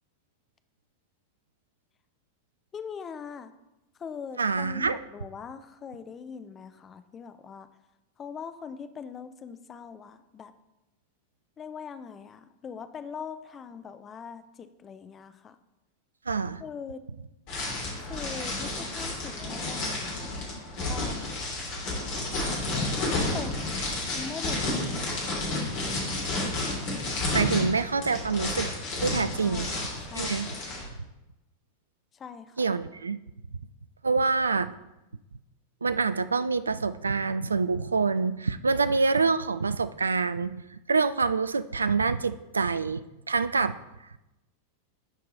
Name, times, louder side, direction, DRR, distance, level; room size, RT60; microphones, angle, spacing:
voice 1, 2.7-3.5 4.0-7.7 8.2-10.5 11.6-15.6 16.6-17.0 18.0-20.1 20.9-21.4 22.9-23.8 24.1-25.8 29.3-30.6 32.2-32.6, left 6 dB, 25° left, 11 dB, 0.5 m, -41 dB
voice 2, 4.4-5.0 16.3-16.6 27.3-28.7 29.0-29.7 30.1-30.5 32.6-33.2 34.0-34.7 35.8-43.7, right 4 dB, 75° right, 14 dB, 0.3 m, -26 dB
sound 1, 17.5-30.8, left 2 dB, 45° left, 2.9 m, -31 dB
11.0 x 4.6 x 4.1 m, 0.97 s
figure-of-eight pair, 90°, 0 cm